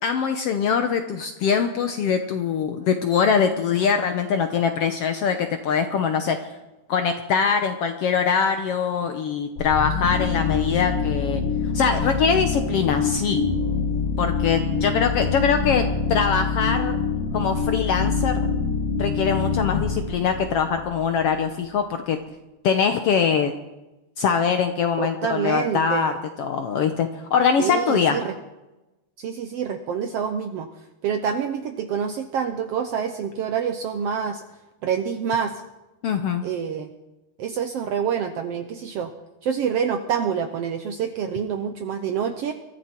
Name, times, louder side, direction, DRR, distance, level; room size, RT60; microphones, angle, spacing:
voice 1, 0.0-6.4 6.9-11.4 11.7-13.4 14.2-17.0 17.3-18.4 19.0-22.2 22.6-23.5 24.2-28.2 36.0-36.4, left 6 dB, 70° left, 7 dB, 1.5 m, -23 dB
sound 1, 9.6-21.3, left 5 dB, 85° left, 3.3 m, -25 dB
voice 2, 25.0-26.1 27.6-28.3 29.2-30.7 31.0-34.4 34.8-35.6 36.4-36.9 37.4-39.1 39.4-42.5, right 7 dB, 70° right, 7 dB, 1.5 m, -27 dB
23.0 x 14.0 x 4.5 m, 1.0 s
omnidirectional pair, 3.6 m